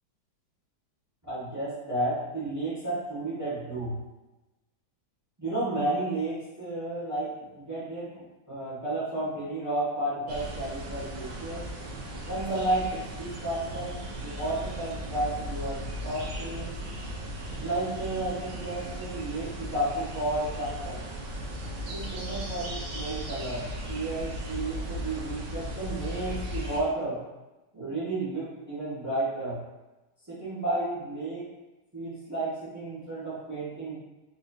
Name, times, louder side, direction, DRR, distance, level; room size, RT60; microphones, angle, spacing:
voice 1, 1.2-3.9 5.4-11.7 12.2-16.8 17.6-21.0 21.9-27.2 27.7-29.6 30.3-31.4 31.9-33.9, right 2 dB, 25° right, -9 dB, 0.4 m, -32 dB
sound 1, 10.3-26.8, equal, 75° right, 0.8 m, -37 dB
4.0 x 2.6 x 2.2 m, 1.1 s
omnidirectional pair, 2.2 m